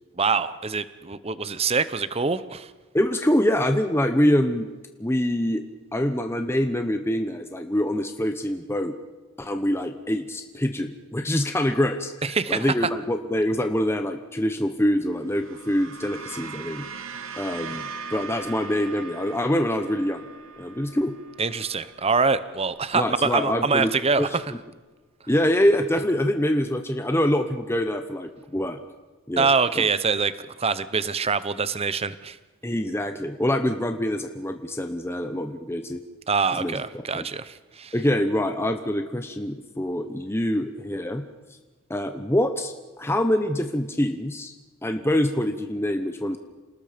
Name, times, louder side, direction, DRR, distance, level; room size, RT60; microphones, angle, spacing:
voice 1, 0.2-2.7 12.2-12.7 21.4-24.5 29.4-30.3 30.6-32.4 36.3-37.9, right 4 dB, 30° right, 15 dB, 0.8 m, -24 dB
voice 2, 2.9-4.7 5.0-5.6 5.9-9.0 9.4-12.1 12.5-16.9 17.4-20.2 20.6-21.1 22.9-23.9 24.2-24.4 25.3-28.8 29.3-29.5 29.7-29.8 32.6-36.0 36.5-36.8 37.1-37.2 37.9-41.2 41.9-44.5 44.8-46.4, left 1 dB, 10° left, 6 dB, 0.9 m, -25 dB
sound 1, 15.1-23.5, right 5 dB, 75° right, 2.0 m, -40 dB
28.0 x 19.0 x 5.2 m, 1.2 s
head